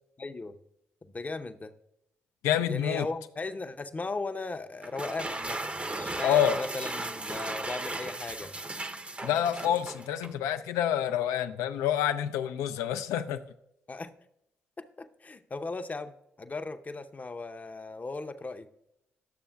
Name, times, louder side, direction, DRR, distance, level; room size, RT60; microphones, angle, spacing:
voice 1, 0.2-0.6 1.0-1.7 2.7-8.5 13.9-14.1 14.8-18.7, left 3 dB, 30° left, 8 dB, 0.6 m, -37 dB
voice 2, 2.4-3.1 6.2-6.6 9.2-13.4, left 10 dB, 85° left, 9 dB, 0.4 m, -27 dB
sound 1, 4.8-10.4, right 2 dB, 25° right, 0.6 m, -36 dB
11.5 x 6.9 x 2.3 m, 0.81 s
supercardioid pair, 50°, 5 cm